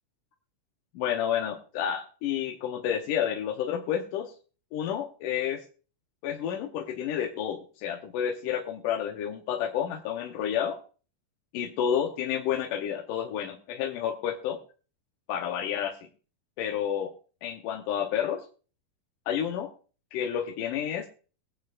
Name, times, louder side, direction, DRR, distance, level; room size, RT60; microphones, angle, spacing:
voice 1, 0.9-4.3 4.7-5.6 6.2-10.8 11.5-14.6 15.3-16.0 16.6-17.1 17.4-18.4 19.3-19.7 20.1-21.1, left 9 dB, 85° left, 2 dB, 2.5 m, -30 dB
22.5 x 8.5 x 2.5 m, 0.38 s
omnidirectional pair, 3.7 m